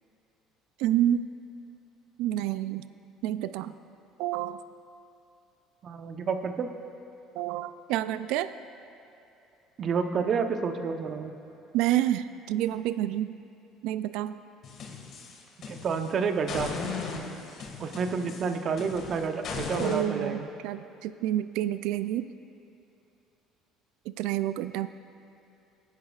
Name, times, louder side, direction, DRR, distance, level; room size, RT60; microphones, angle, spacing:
voice 1, 0.8-1.3 2.2-2.8 3.2-3.7 4.2-4.6 7.4-8.5 11.7-13.4 13.8-14.3 19.8-22.3 24.2-24.9, right 12 dB, 80° right, 12 dB, 0.3 m, -28 dB
voice 2, 5.8-6.7 9.8-11.3 15.7-16.7 17.8-20.5, right 5 dB, 45° right, 6 dB, 0.8 m, -29 dB
sound 1, 14.6-16.1 16.5-20.0, left 4 dB, 55° left, 1.8 m, -37 dB
22.5 x 10.5 x 2.4 m, 2.7 s
supercardioid pair, 100°, 0 cm